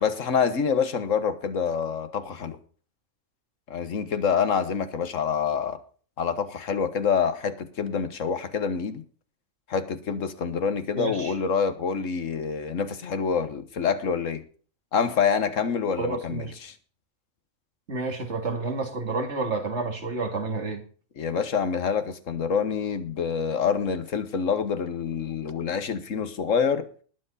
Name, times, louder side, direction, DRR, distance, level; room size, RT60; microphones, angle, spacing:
voice 1, 0.0-2.6 3.7-5.8 6.2-9.0 9.7-14.4 14.9-16.8 21.2-26.9, left 6 dB, 75° left, 1.6 m, -26 dB
voice 2, 10.9-11.4 16.0-16.5 17.9-20.8, right 3 dB, 60° right, 2.4 m, -30 dB
20.0 x 7.9 x 4.2 m
omnidirectional pair, 1.4 m